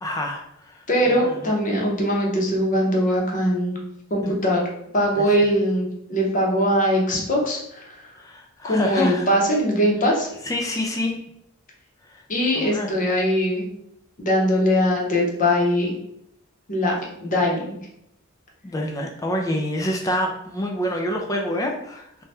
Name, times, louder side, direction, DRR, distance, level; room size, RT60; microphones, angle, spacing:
voice 1, 0.0-1.4 4.2-4.3 5.2-5.3 8.2-9.3 10.4-11.2 12.0-12.2 12.5-12.9 18.6-22.2, left 1 dB, 15° left, 1 dB, 0.3 m, -27 dB
voice 2, 0.9-3.8 4.1-4.6 4.9-8.1 8.6-10.3 12.3-13.7 14.2-16.0 16.7-17.0 17.2-17.6, equal, 40° left, -1 dB, 0.8 m, -21 dB
2.7 x 2.2 x 3.2 m, 0.78 s
head